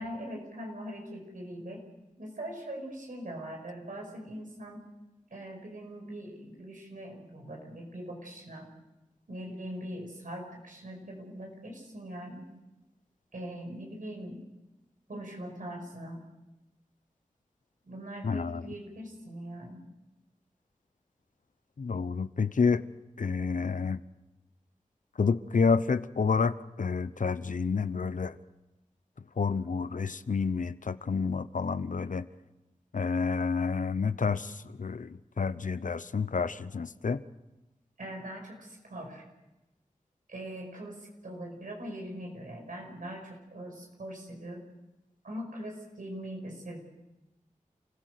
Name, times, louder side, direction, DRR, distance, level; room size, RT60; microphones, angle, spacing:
voice 1, 0.0-1.8 2.2-4.8 5.3-8.7 9.3-12.5 13.3-14.4 15.1-16.2 17.8-19.8 38.0-39.2 40.3-44.6 45.2-46.8, right 1 dB, 85° right, 1 dB, 5.6 m, -41 dB
voice 2, 18.2-18.6 21.8-22.8 23.2-24.0 25.2-28.4 29.4-32.3 32.9-37.2, left 5 dB, 75° left, 14 dB, 0.8 m, -29 dB
29.0 x 16.0 x 6.7 m, 1.0 s
cardioid pair, 40°, 13 cm